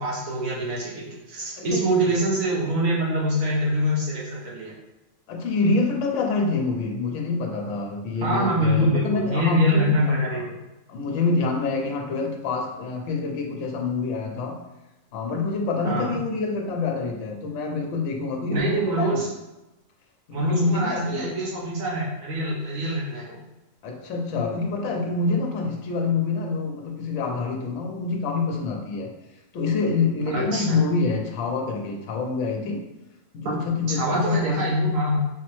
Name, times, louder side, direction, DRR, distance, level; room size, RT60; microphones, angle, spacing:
voice 1, 0.0-4.7 8.2-10.6 15.8-16.2 18.5-19.3 20.3-23.4 30.3-30.8 33.9-35.2, right 1 dB, 85° right, -5 dB, 1.2 m, -24 dB
voice 2, 1.6-1.9 5.3-10.4 10.9-14.6 15.1-19.2 20.4-21.4 23.8-29.1 29.5-32.8 33.3-34.6, left 4 dB, 70° left, 1 dB, 0.9 m, -26 dB
4.6 x 2.0 x 3.0 m, 1.0 s
omnidirectional pair, 1.4 m